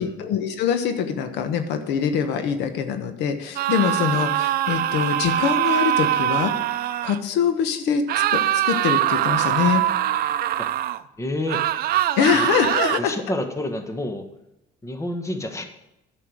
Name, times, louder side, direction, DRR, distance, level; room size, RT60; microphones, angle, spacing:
voice 1, 0.0-6.5 7.0-8.0 8.3-9.8 12.2-13.1, left 7 dB, 85° left, 8 dB, 1.2 m, -23 dB
sound 1, 3.6-7.2 8.1-11.0 11.5-13.0, right 12 dB, 65° right, 0.5 m, -23 dB
voice 2, 11.2-11.7 12.3-12.5 13.0-14.3 14.8-15.6, left 1 dB, 15° left, 7 dB, 1.5 m, -29 dB
10.0 x 6.8 x 7.9 m, 0.90 s
cardioid pair, 110°, 17 cm